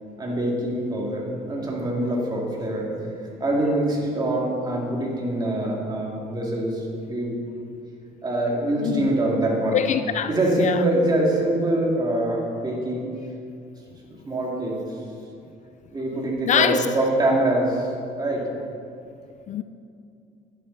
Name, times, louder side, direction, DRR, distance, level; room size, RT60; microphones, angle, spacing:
voice 1, 0.2-2.9 3.4-7.3 8.2-9.8 10.3-13.1 14.1-14.8 15.9-17.9 18.2-18.5, right 1 dB, 25° right, -2 dB, 2.5 m, -24 dB
voice 2, 9.7-10.3 10.6-10.8 16.5-16.9 19.5-19.6, left 9 dB, 45° left, 11 dB, 0.4 m, -23 dB
10.5 x 10.5 x 4.1 m, 2.5 s
cardioid pair, 110°, 17 cm